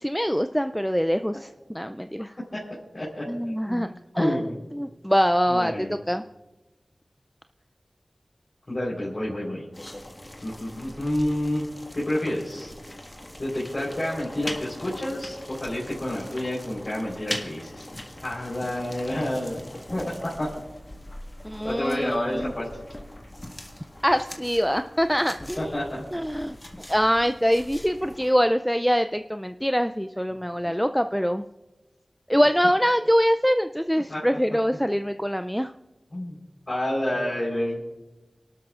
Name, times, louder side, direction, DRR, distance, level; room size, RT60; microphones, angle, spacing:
voice 1, 0.0-2.3 3.3-3.9 4.1-6.2 21.4-22.5 24.0-26.6 26.9-31.4 32.3-35.7, equal, 5° left, 9 dB, 0.3 m, -24 dB
voice 2, 2.2-2.6 2.9-3.2 3.7-3.9 4.2-4.6 5.5-5.9 8.7-9.6 10.4-11.6 11.9-12.7 13.4-17.9 18.2-19.6 19.9-20.5 21.6-22.7 25.6-26.0 30.6-30.7 34.1-34.4 36.1-36.4 36.7-37.8, left 1 dB, 45° left, -6 dB, 3.8 m, -29 dB
sound 1, 9.7-28.3, left 1 dB, 30° left, 1.7 m, -41 dB
29.5 x 12.0 x 2.4 m, 1.1 s
cardioid pair, 40°, 0 cm